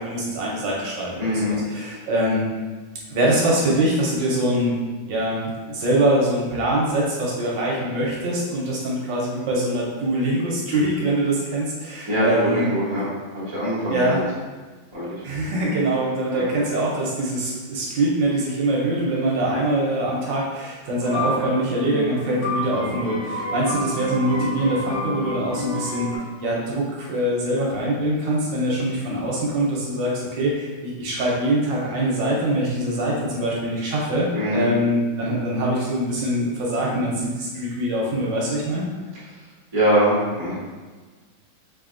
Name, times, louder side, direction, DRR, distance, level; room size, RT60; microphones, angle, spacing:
voice 1, 0.0-2.4 3.1-4.8 5.1-12.7 13.9-14.2 15.2-26.1 26.4-38.8, right 1 dB, 70° right, -4 dB, 1.3 m, -23 dB
voice 2, 1.2-1.6 12.1-13.1 13.3-14.2 14.9-15.2 16.3-16.4 34.3-34.7 39.7-40.5, equal, 20° right, -8 dB, 0.7 m, -22 dB
sound 1, 21.0-26.2, left 1 dB, 50° left, 1.2 m, -29 dB
4.4 x 2.7 x 2.5 m, 1.3 s
omnidirectional pair, 2.2 m